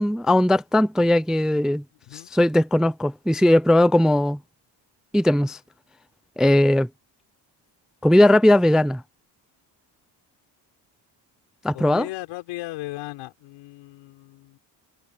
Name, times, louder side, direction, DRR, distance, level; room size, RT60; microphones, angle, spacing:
voice 1, 0.0-1.8 2.1-4.4 5.1-5.6 6.4-6.9 8.0-9.0 11.6-12.1, left 1 dB, ahead, 0.3 m, -18 dB
voice 2, 11.7-14.6, left 18 dB, 90° left, 6.1 m, -36 dB
cardioid pair, 90°, 45 cm